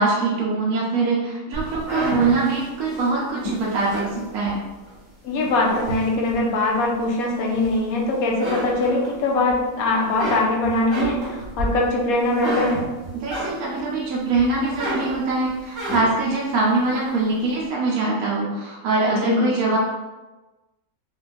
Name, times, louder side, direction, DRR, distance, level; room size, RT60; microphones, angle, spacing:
voice 1, 0.0-4.6 13.1-19.8, right 3 dB, 85° right, -4 dB, 1.2 m, -23 dB
sound 1, 1.5-4.9 5.4-6.5 7.0-8.0 8.3-9.5 9.9-13.9 14.3-16.3, equal, 15° right, 1.4 m, -30 dB
voice 2, 5.2-12.8 19.1-19.5, left 2 dB, 75° left, -1 dB, 1.2 m, -22 dB
4.7 x 2.5 x 2.5 m, 1.1 s
omnidirectional pair, 1.5 m